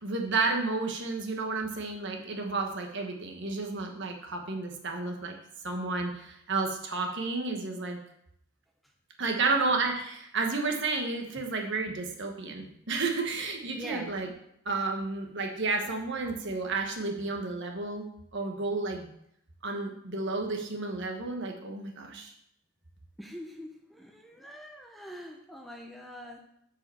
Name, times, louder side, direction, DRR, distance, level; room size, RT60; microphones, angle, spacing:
voice 1, 0.0-5.4 5.6-8.0 9.2-14.3 14.6-18.1 18.3-19.1 19.6-22.3, right 3 dB, 50° right, 3 dB, 1.3 m, -31 dB
voice 2, 13.8-14.1 23.2-26.5, equal, ahead, 1 dB, 0.7 m, -44 dB
7.6 x 5.1 x 7.0 m, 0.74 s
head